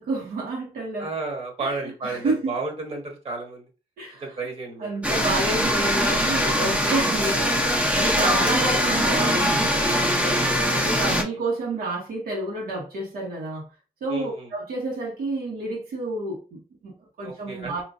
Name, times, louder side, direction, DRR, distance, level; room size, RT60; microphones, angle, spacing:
voice 1, 0.0-1.1 1.6-1.7 2.0-2.5 4.0-4.2 4.8-13.7 14.0-17.8, right 2 dB, 90° right, -3 dB, 1.6 m, -30 dB
voice 2, 1.0-3.7 4.2-5.0 7.1-7.3 11.3-11.4 14.1-14.5 17.2-17.8, right 3 dB, 45° right, 1 dB, 1.3 m, -32 dB
sound 1, 5.0-11.2, equal, 10° right, 0.7 m, -22 dB
5.0 x 3.1 x 2.6 m, 0.34 s
cardioid pair, 130°, 14 cm